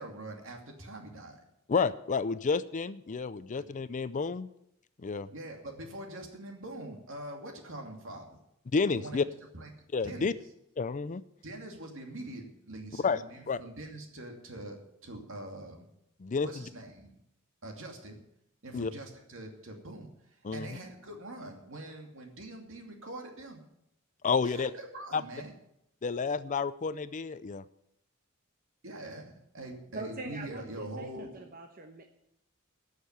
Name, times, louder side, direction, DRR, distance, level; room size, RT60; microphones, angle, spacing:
voice 1, 0.0-1.4 3.6-3.7 5.3-8.4 8.9-9.7 10.0-10.3 11.4-15.9 16.4-17.2 17.6-18.2 18.6-20.1 20.5-23.6 24.4-25.5 28.8-31.4, right 1 dB, 60° right, 3 dB, 2.6 m, -43 dB
voice 2, 1.7-4.5 5.0-5.3 8.7-9.2 9.9-10.3 10.8-11.2 13.0-13.6 16.2-16.5 18.7-18.9 20.4-20.7 24.2-24.7 25.1-25.2 26.0-27.6, left 5 dB, 35° left, 15 dB, 0.4 m, -30 dB
voice 3, 29.9-32.1, right 2 dB, 40° right, 3 dB, 1.1 m, -43 dB
13.0 x 6.6 x 9.5 m, 0.79 s
head